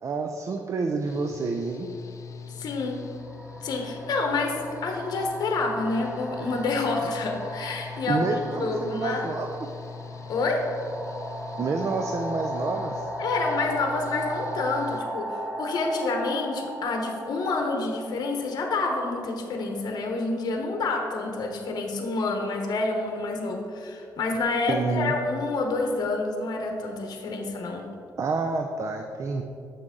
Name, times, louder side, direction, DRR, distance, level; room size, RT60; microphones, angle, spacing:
voice 1, 0.0-1.9 8.1-9.6 11.6-13.1 24.7-25.1 28.2-29.4, right 4 dB, 45° right, 4 dB, 0.5 m, -28 dB
Engine / Mechanical fan, 1.1-15.0, left 6 dB, 45° left, 0.4 m, -42 dB
sound 1, 1.7-1.9 2.8-19.5, right 1 dB, ahead, 1.4 m, -37 dB
voice 2, 2.6-3.0 3.6-9.3 10.3-10.6 13.2-27.9, left 3 dB, 65° left, 2 dB, 1.0 m, -28 dB
7.7 x 5.9 x 3.8 m, 2.4 s
cardioid pair, 95°, 7 cm